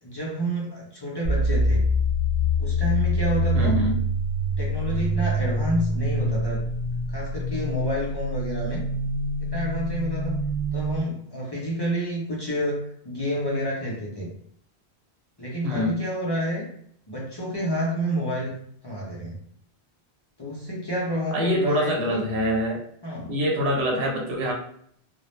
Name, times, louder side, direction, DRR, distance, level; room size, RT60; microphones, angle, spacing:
voice 1, 0.0-1.8 2.6-3.8 4.6-6.6 7.1-8.8 9.4-10.4 10.7-14.3 15.4-16.7 17.1-19.4 20.4-22.3 23.0-23.3, equal, 35° left, -5 dB, 0.4 m, -29 dB
sound 1, 1.2-11.0, equal, 65° left, 0.8 m, -25 dB
voice 2, 3.5-4.0 15.6-16.0 21.3-22.8 23.2-24.5, equal, 75° right, 0 dB, 0.9 m, -25 dB
2.0 x 2.0 x 2.9 m, 0.65 s
omnidirectional pair, 1.1 m